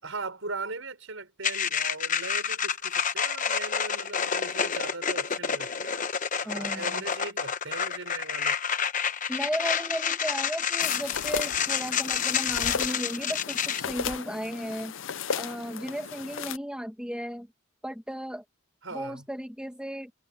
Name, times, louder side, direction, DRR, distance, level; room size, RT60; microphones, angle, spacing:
voice 1, 0.0-6.1 6.4-8.6 18.8-19.2, right 3 dB, 65° right, 5.9 m, -39 dB
sound 1, 1.4-13.8, left 7 dB, 35° left, 1.0 m, -29 dB
voice 2, 6.4-7.0 9.3-14.9 15.3-17.5 17.8-18.4 18.9-20.1, equal, 5° right, 2.2 m, -35 dB
sound 2, 10.8-16.6, left 7 dB, 60° left, 0.6 m, -35 dB
head